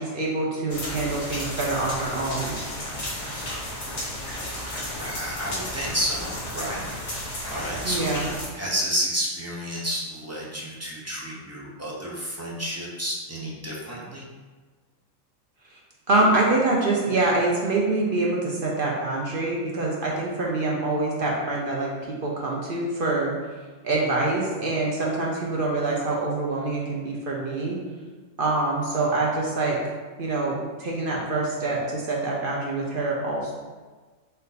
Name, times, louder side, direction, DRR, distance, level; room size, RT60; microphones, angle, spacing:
voice 1, 0.0-2.6 7.8-8.3 16.1-21.9 22.2-23.3 23.8-27.8 28.4-29.8 30.2-33.5, right 2 dB, 50° right, -3 dB, 0.7 m, -25 dB
sound 1, 0.7-8.5, left 1 dB, 45° left, 1.3 m, -33 dB
voice 2, 4.6-14.3, equal, 15° right, -5 dB, 0.6 m, -31 dB
4.3 x 2.6 x 3.9 m, 1.4 s
omnidirectional pair, 1.4 m